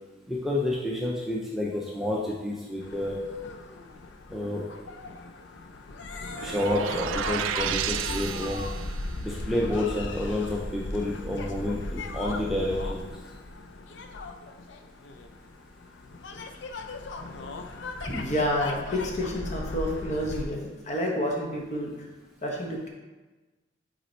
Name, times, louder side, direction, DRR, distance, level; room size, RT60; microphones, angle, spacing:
voice 1, 0.3-3.2 4.3-4.6 6.4-8.6 9.2-13.0 18.1-18.2, left 1 dB, ahead, -4 dB, 0.5 m, -29 dB
sound 1, 2.8-20.5, left 2 dB, 70° left, 0.5 m, -37 dB
sound 2, 6.3-9.1, right 9 dB, 85° right, 0.3 m, -32 dB
voice 2, 18.1-22.1 22.4-22.9, left 1 dB, 35° left, 0 dB, 1.0 m, -29 dB
5.4 x 4.2 x 4.4 m, 1.2 s
head